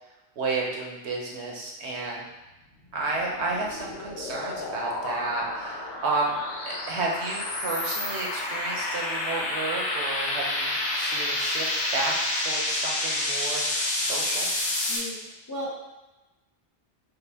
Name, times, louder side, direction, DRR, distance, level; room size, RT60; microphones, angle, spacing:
voice 1, 0.4-2.2 2.9-6.4 6.7-12.1 12.4-13.6 14.0-14.5, right 3 dB, 75° right, -2 dB, 1.0 m, -31 dB
sound 1, 3.0-15.0, left 1 dB, 85° left, 1.2 m, -29 dB
voice 2, 14.9-15.2 15.5-15.8, equal, 25° left, -6 dB, 0.5 m, -34 dB
5.5 x 2.1 x 3.4 m, 1.0 s
omnidirectional pair, 1.2 m